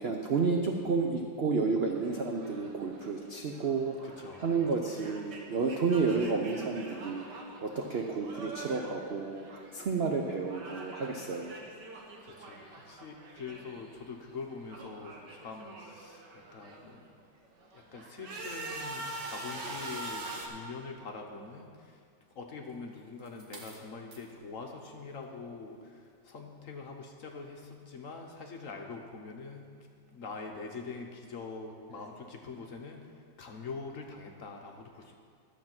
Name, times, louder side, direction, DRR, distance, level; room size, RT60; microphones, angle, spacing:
voice 1, 0.0-11.5 19.6-19.8, right 4 dB, 80° right, 2 dB, 0.5 m, -31 dB
sound 1, 1.9-10.0 10.2-14.0 14.3-16.9 17.4-20.5, right 2 dB, 65° right, 1.8 m, -45 dB
voice 2, 4.0-4.5 12.2-17.3 17.7-35.1, left 4 dB, 55° left, 2 dB, 1.0 m, -44 dB
sound 2, 22.6-24.3 25.1-25.4, right 3 dB, 45° right, 1.2 m, -52 dB
12.0 x 7.3 x 5.9 m, 2.2 s
omnidirectional pair, 2.1 m